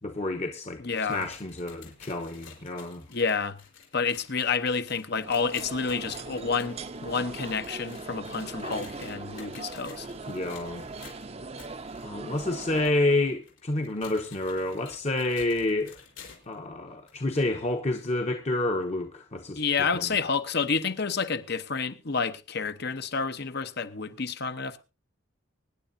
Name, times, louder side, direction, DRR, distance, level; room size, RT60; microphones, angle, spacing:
voice 1, 0.0-0.8 1.1-3.0 10.3-10.8 12.0-16.0 16.5-19.6 20.0-20.1, left 2 dB, 35° left, 1.0 m, -29 dB
sound 1, 0.7-16.6 17.1-17.2 17.9-18.0 18.9-19.0, left 6 dB, 80° left, 4.6 m, -52 dB
voice 2, 0.8-1.2 3.1-3.6 3.9-10.1 19.6-24.8, left 5 dB, 55° left, 1.0 m, -29 dB
sound 2, 5.1-12.9, right 3 dB, 30° right, 0.7 m, -40 dB
24.0 x 10.0 x 2.7 m
head